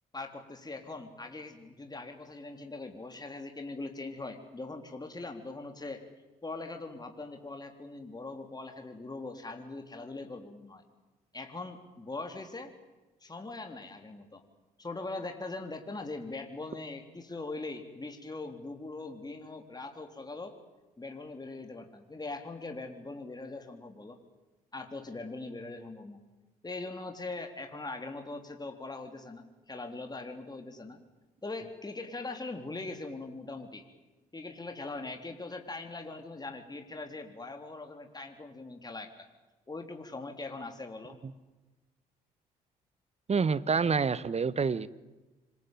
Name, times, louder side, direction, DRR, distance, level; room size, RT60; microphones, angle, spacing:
voice 1, 0.1-6.0 6.4-10.8 11.3-12.7 13.2-14.4 14.8-20.6 21.0-24.2 24.7-26.2 26.6-31.0 31.4-33.8 34.3-39.3 39.7-41.2, left 3 dB, 20° left, 5 dB, 3.8 m, -41 dB
voice 2, 43.3-44.9, right 5 dB, 35° right, 17 dB, 1.3 m, -27 dB
26.0 x 21.0 x 9.3 m, 1.1 s
hypercardioid pair, 50°, 18 cm